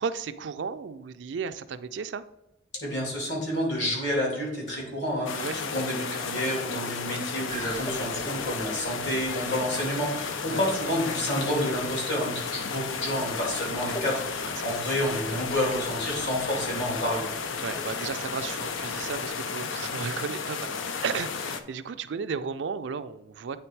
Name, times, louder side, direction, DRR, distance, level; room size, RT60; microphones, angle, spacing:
voice 1, 0.0-2.2 5.3-5.6 10.5-10.6 14.6-14.8 17.6-23.6, right 6 dB, 70° right, 11 dB, 0.4 m, -34 dB
voice 2, 2.8-17.2, equal, 70° left, -2 dB, 2.8 m, -29 dB
sound 1, 5.3-21.6, left 5 dB, 90° left, 0.5 m, -33 dB
sound 2, 7.5-19.3, equal, 20° left, 0.6 m, -43 dB
8.8 x 3.4 x 4.6 m, 0.85 s
head